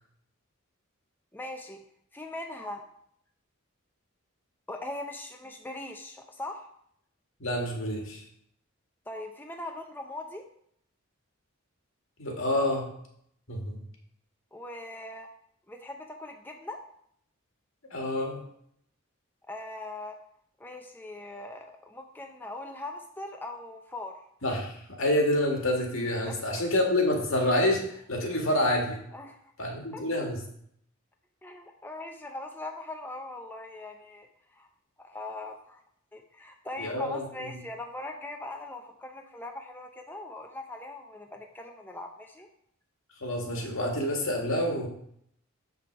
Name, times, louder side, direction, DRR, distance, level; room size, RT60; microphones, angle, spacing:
voice 1, 1.3-1.8 2.1-2.8 4.7-6.7 9.1-10.4 14.5-15.3 15.7-16.8 19.5-20.2 20.6-24.2 26.2-26.4 29.1-29.4 29.9-30.2 31.4-34.3 34.5-34.7 35.0-35.8 36.1-42.5, left 2 dB, 10° left, 3 dB, 0.6 m, -40 dB
voice 2, 7.4-8.2 12.2-12.9 13.5-13.8 17.9-18.4 24.4-27.8 28.1-29.0 29.6-30.4 36.8-37.5 43.2-44.9, left 1 dB, 75° left, 1 dB, 2.0 m, -27 dB
7.2 x 6.0 x 4.7 m, 0.68 s
head